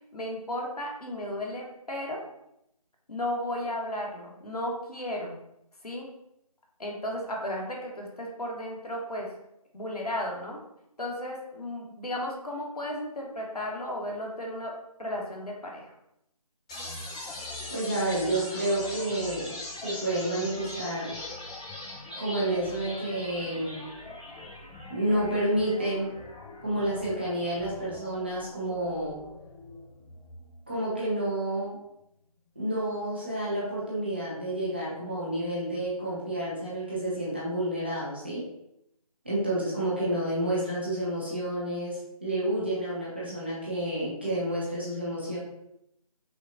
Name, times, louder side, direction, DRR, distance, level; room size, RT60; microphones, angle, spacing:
voice 1, 0.1-2.2 3.1-5.4 5.8-6.1 6.8-9.3 9.7-10.6 11.0-14.7 15.0-15.9, left 1 dB, 75° left, -1 dB, 1.1 m, -34 dB
sound 1, 16.7-30.7, left 2 dB, 10° left, 0.9 m, -41 dB
voice 2, 17.7-19.5 19.8-21.1 22.2-23.8 24.9-26.2 26.6-29.2 30.7-31.8 32.6-38.4 39.2-45.4, right 1 dB, 15° right, -7 dB, 0.6 m, -30 dB
5.6 x 2.3 x 2.5 m, 0.81 s
figure-of-eight pair, 160°, 20 cm